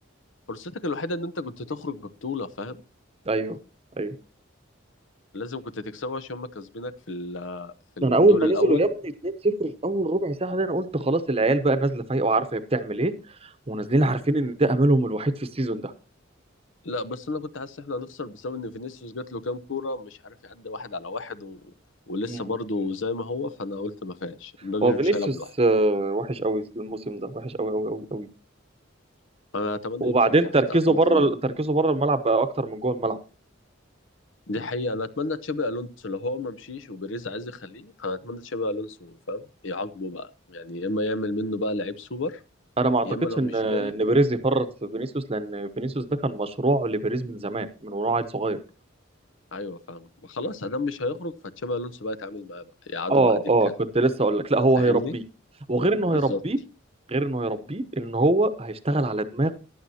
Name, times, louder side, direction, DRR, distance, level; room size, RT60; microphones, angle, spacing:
voice 1, 0.5-2.8 5.3-8.8 16.8-21.6 22.1-25.5 29.5-30.2 30.7-31.3 34.5-42.4 43.0-43.9 49.5-51.3 51.6-53.4 54.8-55.1 56.1-56.4, left 2 dB, 70° left, 14 dB, 0.8 m, -32 dB
voice 2, 3.3-3.6 4.0-4.1 8.0-8.9 9.2-13.1 13.4-15.9 22.3-22.4 24.8-28.3 30.0-33.2 42.8-43.1 43.4-48.6 53.1-53.7 53.9-55.2 55.7-56.6 57.1-59.5, right 2 dB, 30° right, 12 dB, 0.9 m, -23 dB
15.5 x 11.0 x 2.8 m, 0.31 s
head